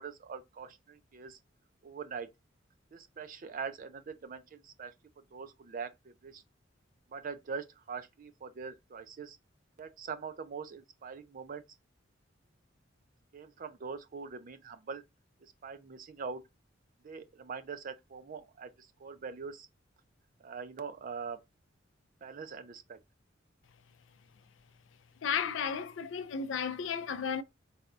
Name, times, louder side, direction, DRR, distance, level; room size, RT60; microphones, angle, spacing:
voice 1, 0.0-1.4 1.8-2.3 2.9-4.9 5.3-6.4 7.1-9.4 9.8-11.6 13.3-15.0 15.6-16.4 17.0-19.7 20.4-21.4 22.2-23.0, right 5 dB, 45° right, 0.4 m, -43 dB
voice 2, 25.2-27.4, left 7 dB, 75° left, 0.4 m, -33 dB
4.1 x 2.3 x 2.4 m
head